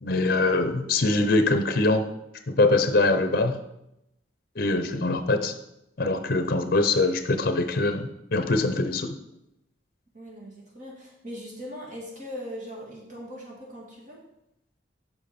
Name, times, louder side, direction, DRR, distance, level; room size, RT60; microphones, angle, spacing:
voice 1, 0.0-2.0 2.5-3.5 4.6-5.5 6.0-9.1, left 2 dB, 50° left, 8 dB, 0.6 m, -23 dB
voice 2, 10.1-14.2, equal, 45° right, -2 dB, 1.9 m, -40 dB
8.3 x 6.0 x 4.2 m, 0.85 s
head